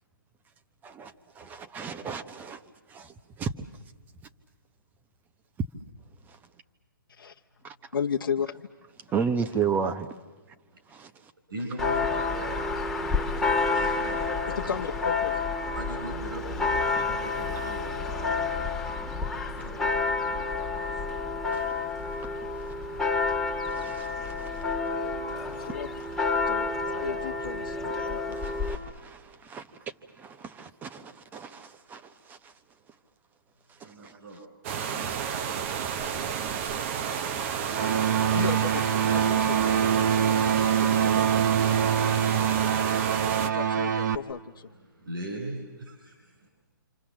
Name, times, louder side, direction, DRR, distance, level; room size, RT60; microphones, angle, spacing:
voice 1, 0.8-2.6 2.9-3.5 7.6-7.7 9.1-10.1 10.9-11.1 13.3-13.5 17.0-17.1 19.0-19.1 21.5-21.6 22.6-22.7 23.6-24.6 25.3-25.8 28.3-29.7 30.2-32.5 33.8-34.1 37.1-38.5, right 6 dB, 15° right, 1.1 m, -35 dB
voice 2, 7.9-8.7 14.7-15.4 25.5-25.9 26.3-26.7 27.0-28.4 38.3-38.8 39.1-40.0 43.4-44.7, left 7 dB, 75° left, 1.0 m, -34 dB
voice 3, 11.5-12.6 13.7-14.2 14.6-14.8 15.8-18.8 19.5-20.5 20.7-21.0 33.8-34.4 34.7-35.2 44.7-46.5, right 1 dB, 75° right, 5.8 m, -41 dB
Church bell, 11.8-28.8, left 4 dB, 5° left, 1.9 m, -29 dB
sound 1, 34.6-43.5, right 7 dB, 35° right, 1.2 m, -31 dB
sound 2, 37.7-44.2, right 8 dB, 55° right, 1.3 m, -24 dB
27.5 x 27.0 x 7.4 m
hypercardioid pair, 140°, 11 cm